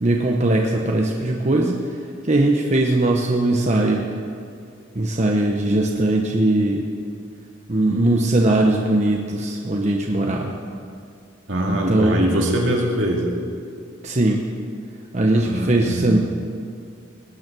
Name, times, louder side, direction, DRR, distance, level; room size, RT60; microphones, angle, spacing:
voice 1, 0.0-1.8 2.2-4.1 4.9-6.8 7.7-10.6 11.9-12.2 14.0-14.4 15.1-16.2, right 1 dB, 35° right, 0 dB, 0.9 m, -20 dB
voice 2, 11.5-13.3 15.4-16.2, right 1 dB, 70° right, -1 dB, 2.4 m, -22 dB
18.5 x 9.4 x 6.2 m, 2.3 s
head